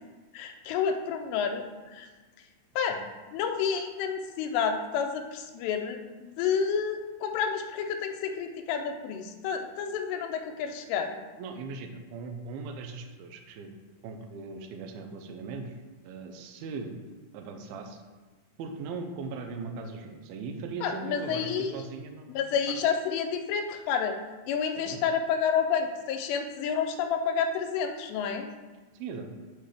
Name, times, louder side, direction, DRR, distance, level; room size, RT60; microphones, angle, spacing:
voice 1, 0.3-1.7 1.9-2.1 2.8-3.0 3.3-11.2 20.8-21.8 22.3-24.2 24.5-28.5, left 7 dB, 85° left, 5 dB, 2.7 m, -29 dB
voice 2, 11.4-13.7 14.0-15.8 16.0-16.9 17.3-18.0 18.6-22.4 22.7-22.9 24.8-25.0 28.9-29.3, right 4 dB, 85° right, 5 dB, 2.2 m, -39 dB
6.0 x 5.5 x 3.3 m, 1.3 s
omnidirectional pair, 4.8 m